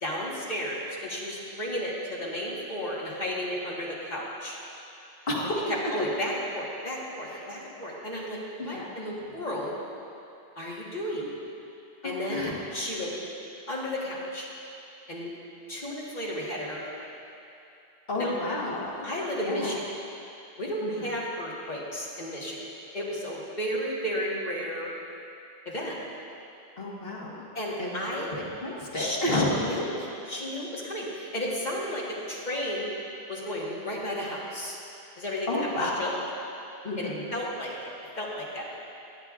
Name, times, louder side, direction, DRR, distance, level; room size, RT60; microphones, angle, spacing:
voice 1, 0.0-4.6 5.7-9.8 10.6-11.2 12.0-12.5 12.7-13.1 13.7-14.5 15.1-15.3 15.7-17.1 18.2-18.3 19.0-19.9 20.6-22.6 22.9-24.9 25.7-26.0 27.5-28.3 28.9-32.9 33.3-34.8 35.2-36.1 37.0-38.7, equal, 45° left, -5 dB, 1.8 m, -33 dB
voice 2, 5.3-5.6 7.3-7.4 8.6-8.9 11.2-11.3 12.0-12.5 18.1-19.1 19.4-19.7 20.8-21.1 26.8-27.4 27.8-29.5 35.5-35.9 36.8-37.3, left 2 dB, 60° left, -5 dB, 1.9 m, -31 dB
17.5 x 10.0 x 2.5 m, 2.7 s
omnidirectional pair, 1.1 m